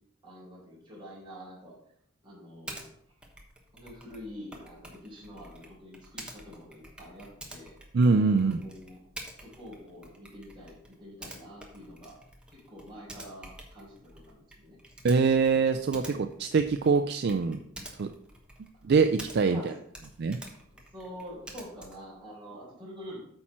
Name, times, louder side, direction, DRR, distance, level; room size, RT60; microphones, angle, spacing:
voice 1, 0.2-1.8 2.2-2.8 3.7-7.7 8.4-9.0 9.4-12.2 12.5-14.8 19.5-19.7 20.7-23.2, equal, 20° right, -6 dB, 3.8 m, -46 dB
Typing, 2.7-2.9 3.2-19.6 19.9-22.1, right 1 dB, 5° right, 1.0 m, -48 dB
voice 2, 7.9-8.6 15.0-17.6 18.0-18.1 18.8-19.6 20.2-20.4, right 4 dB, 50° right, 7 dB, 0.4 m, -24 dB
8.6 x 4.4 x 5.9 m, 0.73 s
head